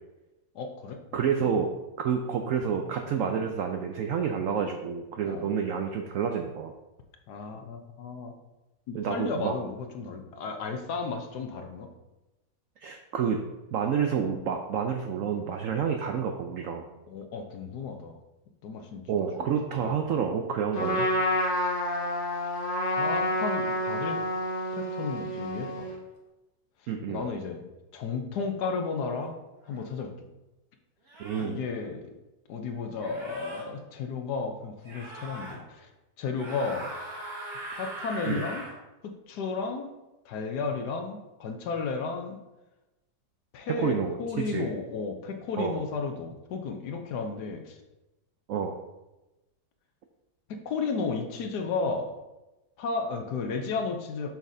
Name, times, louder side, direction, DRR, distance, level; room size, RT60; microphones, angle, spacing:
voice 1, 0.5-1.0 1.4-1.5 5.2-5.5 7.3-8.3 8.9-11.9 17.1-18.2 18.6-20.0 22.9-24.2 24.7-25.9 27.1-27.7 27.9-29.3 29.7-30.1 31.4-32.1 32.5-35.9 36.2-36.9 37.7-38.6 39.0-39.9 40.2-42.4 43.5-47.8 50.5-52.1 52.8-54.3, left 4 dB, 70° left, 5 dB, 1.2 m, -33 dB
voice 2, 1.1-1.7 2.0-6.7 8.9-9.5 12.8-13.4 13.7-16.8 19.1-21.1 26.9-27.3 31.2-31.6 38.3-38.4 43.7-44.7 45.6-45.8 48.5-48.7, right 7 dB, 85° right, 4 dB, 0.7 m, -29 dB
Trumpet, 20.7-26.0, equal, 40° left, 1.0 m, -29 dB
sound 1, 29.7-29.9 31.1-31.5 33.0-33.6 34.8-35.6 36.3-38.7, right 1 dB, 55° right, 2.3 m, -40 dB
7.3 x 5.7 x 2.7 m, 1.0 s
omnidirectional pair, 1.9 m